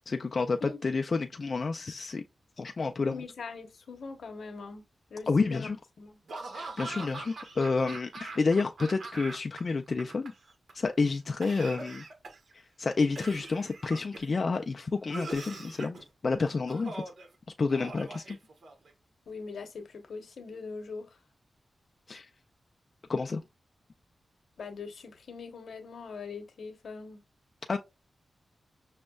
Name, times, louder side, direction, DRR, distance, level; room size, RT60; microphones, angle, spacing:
voice 1, 0.0-2.2 2.6-3.2 5.3-5.8 6.5-10.3 10.7-12.0 12.5-17.0 17.6-18.4 22.1-22.3 23.1-23.4 27.7-27.8, left 4 dB, 50° left, 0.3 m, -29 dB
voice 2, 3.0-6.2 19.3-21.2 24.6-27.2, left 4 dB, 80° left, 0.9 m, -42 dB
Laughter / Cough, 6.3-9.6 9.9-10.7 11.4-12.5 13.2-14.4 15.1-16.0 16.7-17.3 17.7-18.9, right 3 dB, 70° right, 1.0 m, -42 dB
6.1 x 2.1 x 2.3 m
cardioid pair, 75°, 0 cm